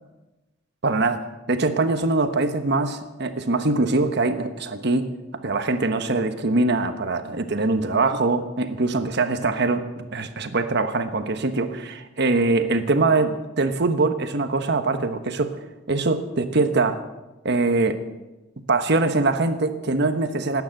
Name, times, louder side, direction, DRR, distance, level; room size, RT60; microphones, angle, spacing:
voice 1, 0.8-1.2 1.5-5.1 5.4-15.6 15.9-17.0 17.4-18.0 18.7-20.6, right 3 dB, 60° right, 8 dB, 1.2 m, -23 dB
18.5 x 9.4 x 7.8 m, 1.1 s
head